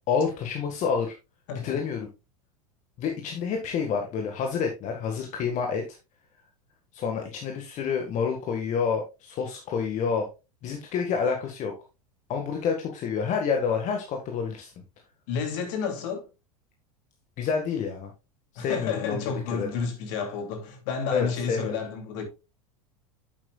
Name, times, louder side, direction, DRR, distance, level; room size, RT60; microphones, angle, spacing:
voice 1, 0.1-1.1 1.6-2.1 3.0-5.8 6.9-10.3 10.6-11.7 12.3-14.7 17.4-18.1 18.5-19.2 19.5-19.7 21.1-21.8, left 6 dB, 40° left, 1.8 m, -28 dB
voice 2, 1.5-1.8 15.3-16.3 18.6-22.3, left 6 dB, 60° left, 2.8 m, -31 dB
9.9 x 7.7 x 2.4 m
hypercardioid pair, 90°, 19 cm